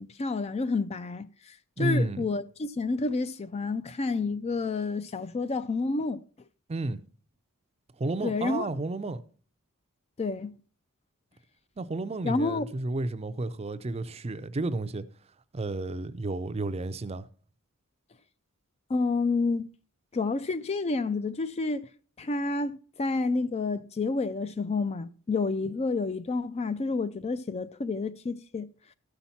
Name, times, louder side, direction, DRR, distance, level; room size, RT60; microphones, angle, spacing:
voice 1, 0.0-6.2 8.2-8.7 10.2-10.5 12.2-12.7 18.9-19.7 20.1-21.9 22.2-28.7, left 3 dB, 30° left, 0.4 m, -29 dB
voice 2, 1.8-2.3 6.7-7.0 8.0-9.2 11.8-15.0 15.5-17.3, right 2 dB, 30° right, 0.5 m, -31 dB
13.5 x 5.8 x 4.1 m
head